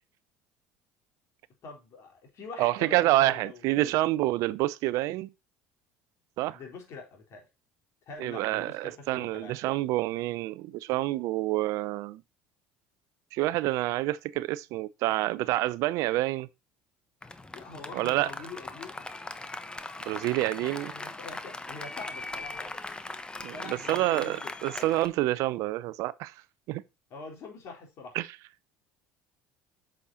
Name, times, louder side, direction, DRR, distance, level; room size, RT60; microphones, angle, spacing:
voice 1, 1.6-3.7 6.5-7.5 8.1-9.6 17.5-19.1 20.4-22.7 23.5-24.9 27.1-28.2, left 4 dB, 55° left, 4.0 m, -45 dB
voice 2, 2.6-5.3 6.4-6.6 8.2-12.2 13.3-16.5 17.9-18.3 20.1-20.9 23.4-26.3 26.7-26.8 28.1-28.3, right 17 dB, 65° right, 0.5 m, -28 dB
Applause, 17.2-25.1, left 2 dB, 15° left, 1.0 m, -40 dB
8.4 x 6.4 x 2.8 m
hypercardioid pair, 75°, 6 cm